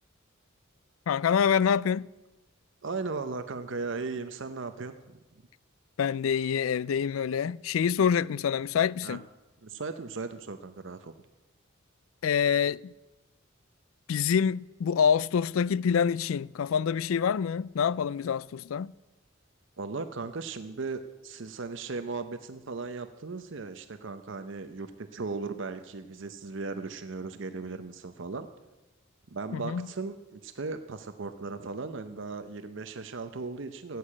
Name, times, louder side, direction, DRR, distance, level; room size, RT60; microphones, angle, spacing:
voice 1, 1.1-2.1 6.0-9.2 12.2-12.9 14.1-18.9 29.5-29.9, left 7 dB, 85° left, 0.4 m, -26 dB
voice 2, 2.8-5.2 9.0-9.2 9.6-11.1 19.8-28.5 29.3-34.0, right 4 dB, 65° right, 0.7 m, -37 dB
15.0 x 8.4 x 8.7 m
head